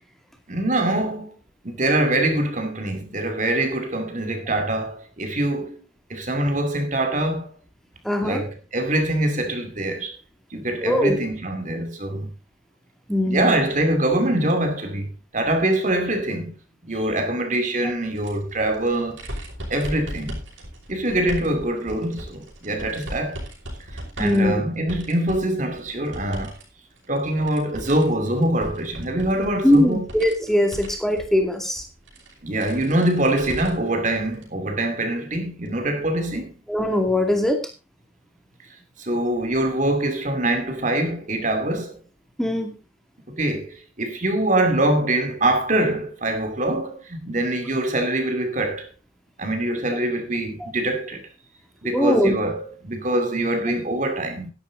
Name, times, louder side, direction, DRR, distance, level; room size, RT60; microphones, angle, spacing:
voice 1, 0.5-1.3 1.6-5.8 6.1-7.5 8.2-10.1 10.5-12.3 13.3-15.1 15.3-16.5 16.9-19.2 19.7-20.4 20.9-23.4 24.2-26.6 27.1-30.1 32.4-36.5 39.0-41.9 43.3-48.9 49.4-51.3 51.8-54.5, right 1 dB, 40° right, 2.4 m, -24 dB
voice 2, 8.0-8.4 10.8-11.2 13.1-13.6 24.2-24.6 29.6-31.9 36.7-37.6 42.4-42.7 50.6-50.7 51.9-52.3, left 1 dB, ahead, 2.3 m, -20 dB
sound 1, 18.1-26.6 26.9-33.9 34.3-34.4 35.7-35.8, equal, 70° right, 5.7 m, -38 dB
12.0 x 11.5 x 3.8 m
head